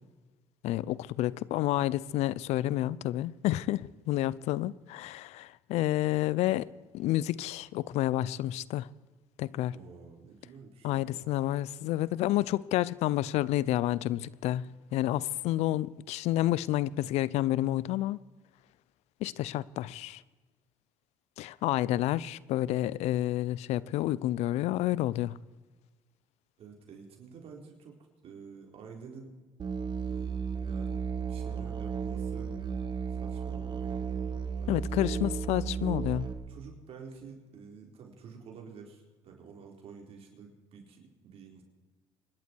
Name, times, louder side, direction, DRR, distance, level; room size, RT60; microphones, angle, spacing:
voice 1, 0.6-6.7 6.9-8.9 9.4-9.8 10.8-18.2 19.2-20.2 21.4-25.4 34.7-36.3, left 14 dB, 75° left, 0.6 m, -29 dB
voice 2, 9.7-11.2 26.6-29.3 30.0-32.5 33.1-34.2 34.6-35.0 36.5-41.6, right 5 dB, 60° right, 4.2 m, -50 dB
Musical instrument, 29.6-36.3, right 6 dB, 40° right, 2.1 m, -34 dB
26.0 x 11.5 x 4.6 m
supercardioid pair, 90°, 11 cm